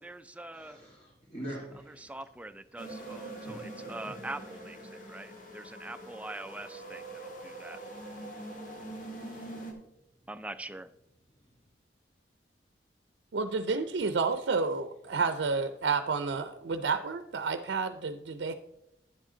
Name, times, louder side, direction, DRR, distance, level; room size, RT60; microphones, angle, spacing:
voice 1, 0.0-0.8 1.8-7.8 10.3-10.9, right 2 dB, 10° right, 12 dB, 0.3 m, -43 dB
voice 2, 0.5-2.1 3.4-4.2, right 1 dB, 30° left, -4 dB, 1.8 m, -44 dB
sound 1, 2.8-9.7, right 1 dB, 50° left, 1.6 m, -44 dB
voice 3, 13.3-18.5, right 4 dB, 90° right, 9 dB, 0.5 m, -30 dB
10.5 x 7.4 x 3.8 m, 0.85 s
head